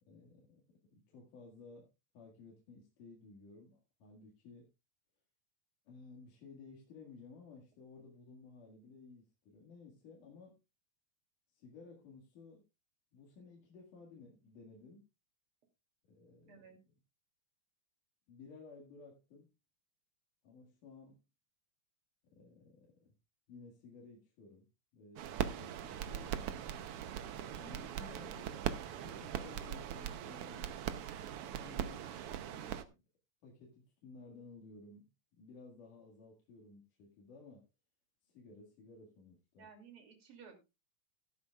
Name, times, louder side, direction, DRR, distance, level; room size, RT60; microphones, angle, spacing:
voice 1, 0.0-1.9 2.1-4.7 5.9-10.6 11.5-12.6 13.1-15.1 16.2-16.9 18.3-19.5 20.4-21.3 22.3-23.1 23.5-24.7 24.9-26.8 27.6-28.5 29.0-30.7 31.4-32.1 32.5-33.0 33.4-37.7 38.2-39.7, left 4 dB, 75° left, -2 dB, 3.6 m, -56 dB
voice 2, 16.5-16.8 27.9-28.4 39.6-40.6, right 6 dB, 45° right, 3 dB, 3.3 m, -56 dB
sound 1, 25.2-32.8, right 9 dB, 90° right, 1.2 m, -40 dB
14.5 x 13.0 x 2.4 m, 0.26 s
omnidirectional pair, 3.7 m